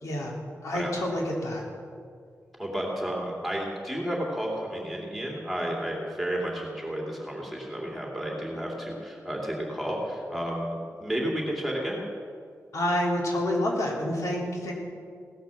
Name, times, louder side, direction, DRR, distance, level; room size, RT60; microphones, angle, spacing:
voice 1, 0.0-0.3 0.6-1.6 12.7-14.7, left 1 dB, 80° left, -2 dB, 3.4 m, -28 dB
voice 2, 2.6-12.0, equal, ahead, -2 dB, 2.9 m, -32 dB
17.5 x 11.0 x 7.2 m, 2.2 s
wide cardioid pair, 180°, 5 cm